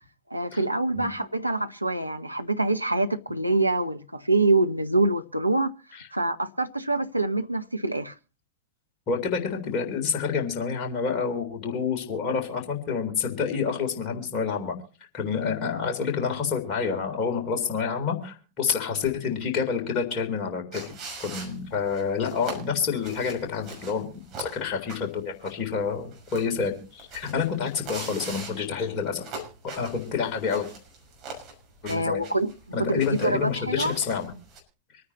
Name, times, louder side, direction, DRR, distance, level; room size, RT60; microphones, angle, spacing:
voice 1, 0.3-5.7 6.1-8.1 31.8-32.5 32.8-34.0, right 2 dB, 85° right, 0.8 m, -25 dB
voice 2, 9.1-14.7 15.1-20.9 21.2-24.1 24.4-29.2 29.8-30.7 31.8-32.2 32.7-34.3, left 6 dB, 35° left, 3.6 m, -28 dB
sound 1, 20.7-34.6, right 3 dB, 35° right, 6.0 m, -42 dB
26.0 x 9.6 x 2.9 m
figure-of-eight pair, 90°, 0 cm